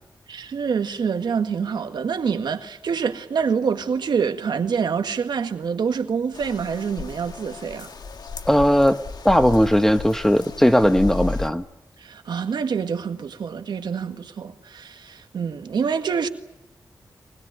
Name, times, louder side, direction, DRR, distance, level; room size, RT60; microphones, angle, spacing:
voice 1, 0.3-7.9 12.0-16.3, right 6 dB, 85° right, 1.8 m, -26 dB
sound 1, 6.3-11.5, left 4 dB, 70° left, 1.8 m, -34 dB
voice 2, 8.4-9.0 9.2-11.6, equal, 5° left, 1.1 m, -18 dB
23.5 x 20.5 x 9.4 m
wide cardioid pair, 95°, 7 cm